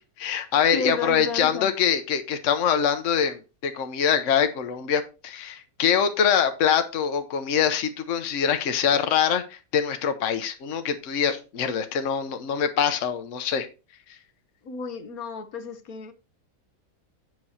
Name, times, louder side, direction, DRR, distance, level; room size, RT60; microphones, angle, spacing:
voice 1, 0.2-13.7, left 8 dB, 65° left, 1.2 m, -24 dB
voice 2, 0.7-1.7 14.6-16.1, left 5 dB, 80° left, 1.5 m, -32 dB
8.1 x 6.2 x 4.2 m
omnidirectional pair, 1.5 m